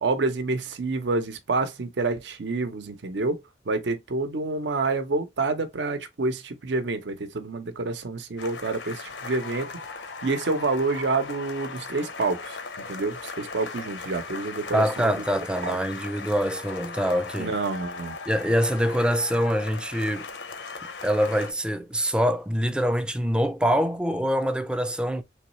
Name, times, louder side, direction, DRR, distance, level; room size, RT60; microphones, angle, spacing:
voice 1, 0.0-3.4 3.7-9.7 10.2-12.6 12.8-15.1 15.6-15.8 17.4-18.1, right 3 dB, 75° right, 0.6 m, -28 dB
sound 1, 8.4-21.5, left 4 dB, 85° left, 0.7 m, -38 dB
voice 2, 14.7-17.6 18.3-20.3 21.0-25.2, equal, 5° right, 0.3 m, -24 dB
3.4 x 3.1 x 2.9 m
head